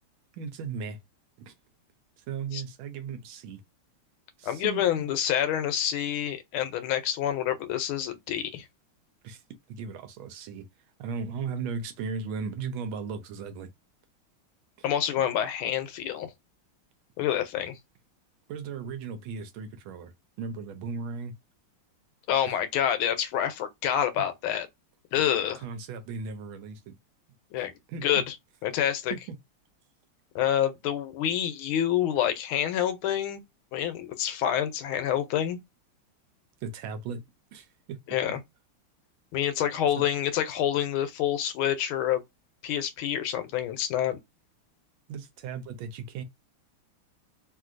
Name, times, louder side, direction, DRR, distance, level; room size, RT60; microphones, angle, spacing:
voice 1, 0.3-1.0 1.4-1.5 2.2-3.6 4.4-5.1 9.2-9.4 9.7-10.7 11.0-13.7 15.2-15.3 18.5-21.3 24.1-24.3 25.6-27.0 27.9-28.2 29.1-29.4 36.6-37.2 37.5-38.0 40.0-40.1 45.1-46.2, right 5 dB, 80° right, 1.4 m, -36 dB
voice 2, 4.5-8.6 14.8-16.3 17.2-17.8 22.3-24.7 25.1-25.6 27.5-27.7 28.0-28.3 28.6-29.1 30.3-33.4 33.7-35.6 38.1-38.4 39.3-42.2 42.6-44.2, left 10 dB, 80° left, 1.4 m, -27 dB
3.2 x 2.6 x 2.5 m
omnidirectional pair, 2.3 m